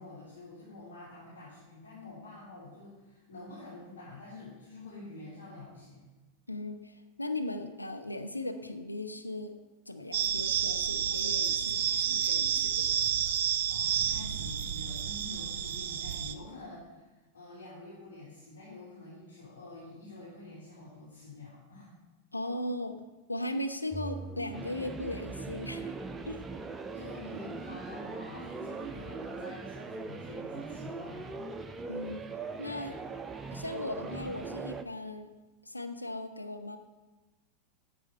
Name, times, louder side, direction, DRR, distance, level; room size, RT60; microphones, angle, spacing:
voice 1, 0.0-6.1 13.7-22.0 26.9-31.3, left 2 dB, 65° left, -8 dB, 3.0 m, -47 dB
voice 2, 6.5-9.5 9.9-13.1 22.3-23.0 23.3-25.9 26.3-26.4 31.9-32.3 32.6-33.0 33.5-35.3 35.6-36.8, left 1 dB, 85° left, 6 dB, 0.7 m, -38 dB
sound 1, 10.1-16.3, right 9 dB, 55° right, 0.6 m, -30 dB
sound 2, 23.9-34.8, right 4 dB, 15° right, 0.6 m, -40 dB
9.9 x 6.5 x 5.4 m, 1.2 s
figure-of-eight pair, 90°, 0 cm